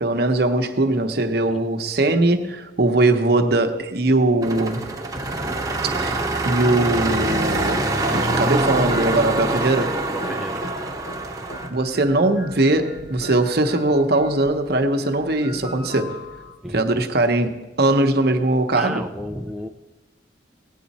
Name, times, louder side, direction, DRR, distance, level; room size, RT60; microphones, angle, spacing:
voice 1, 0.0-4.8 6.0-7.8 8.1-10.0 11.7-16.2 16.7-19.0, right 2 dB, 55° right, 0.9 m, -20 dB
sound 1, 4.4-11.7, right 2 dB, 15° right, 1.0 m, -24 dB
sound 2, 8.5-16.6, equal, 50° left, 0.9 m, -38 dB
voice 2, 10.1-10.6 16.6-16.8 18.7-19.7, equal, ahead, 0.3 m, -32 dB
18.0 x 8.3 x 4.1 m
head